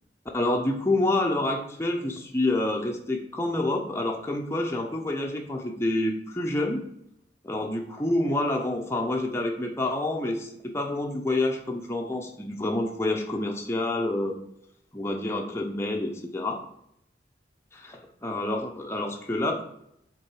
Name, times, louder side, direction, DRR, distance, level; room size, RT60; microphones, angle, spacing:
voice 1, 0.3-6.8 7.4-14.4 14.9-16.6 17.7-19.6, left 2 dB, 15° left, 0 dB, 0.6 m, -28 dB
7.9 x 3.7 x 4.7 m, 0.74 s
head